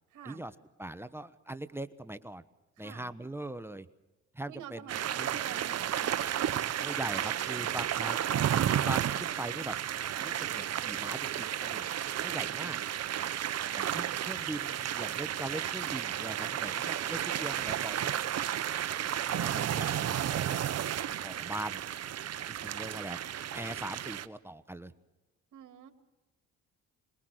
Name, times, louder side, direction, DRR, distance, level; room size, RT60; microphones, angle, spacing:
voice 1, 0.1-0.5 2.8-3.1 4.5-6.1 12.3-12.8 13.1-13.4 16.9-17.2 25.5-25.9, right 10 dB, 80° right, 7 dB, 2.7 m, -47 dB
voice 2, 0.8-2.4 2.8-3.9 4.3-5.4 6.8-8.4 8.8-9.8 10.2-11.9 12.2-12.8 13.7-18.1 19.0-20.6 21.1-21.8 22.5-23.2 23.5-24.9, right 1 dB, 10° right, 11 dB, 1.1 m, -41 dB
sound 1, 4.9-24.3, right 10 dB, 55° right, 1.0 m, -32 dB
26.5 x 21.0 x 6.5 m, 1.1 s
cardioid pair, 90°, 30 cm